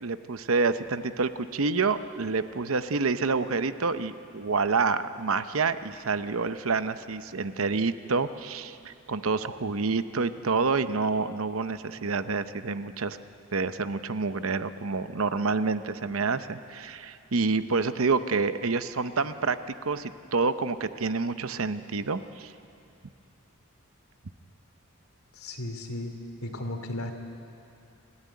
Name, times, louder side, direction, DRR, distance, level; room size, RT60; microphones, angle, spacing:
voice 1, 0.0-13.2 13.5-19.6 19.8-22.5, right 4 dB, 70° right, 11 dB, 0.8 m, -28 dB
voice 2, 25.3-26.1 26.4-27.1, left 1 dB, 85° left, 5 dB, 2.7 m, -35 dB
28.5 x 14.0 x 9.6 m, 2.7 s
head